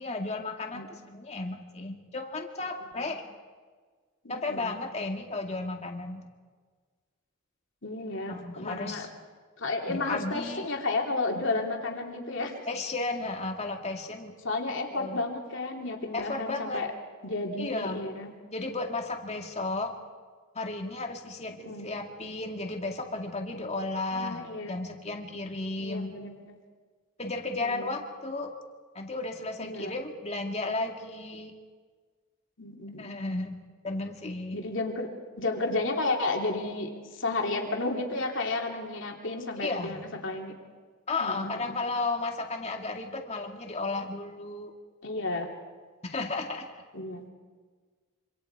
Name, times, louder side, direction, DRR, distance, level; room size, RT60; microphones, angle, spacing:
voice 1, 0.0-3.2 4.3-6.2 8.3-9.1 9.9-10.7 12.7-14.3 14.9-15.2 16.1-16.8 17.6-18.0 18.5-19.9 20.5-24.4 24.7-26.1 27.2-28.5 28.9-31.5 33.0-33.6 33.8-34.6 39.6-40.0 41.1-44.7 46.0-47.1, left 2 dB, 30° left, 3 dB, 2.1 m, -34 dB
voice 2, 4.2-4.8 7.8-9.1 9.6-12.5 14.4-16.9 17.2-18.3 21.6-21.9 24.1-24.8 25.8-26.5 27.5-27.9 29.6-29.9 32.6-33.2 34.5-35.1 35.4-40.0 40.2-40.6 41.2-41.8 45.0-45.5 46.9-47.3, left 2 dB, 60° left, 1 dB, 3.0 m, -32 dB
26.5 x 26.0 x 4.8 m, 1.5 s
head